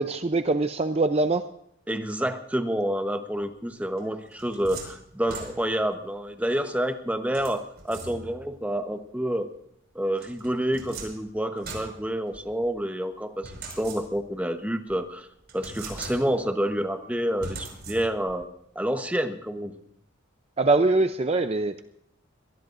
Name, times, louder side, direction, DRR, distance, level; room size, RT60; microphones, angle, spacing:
voice 1, 0.0-1.5 20.6-21.8, right 2 dB, 30° right, 9 dB, 0.5 m, -23 dB
voice 2, 1.9-9.5 9.9-15.3 15.5-18.5 18.7-19.7, right 1 dB, 5° right, 7 dB, 1.0 m, -28 dB
sound 1, 4.0-5.9 7.3-8.5 10.2-12.7 13.4-14.4 14.9-15.0 15.5-16.6 17.4-18.4, right 3 dB, 55° right, 5.3 m, -41 dB
24.0 x 19.0 x 2.6 m, 0.74 s
head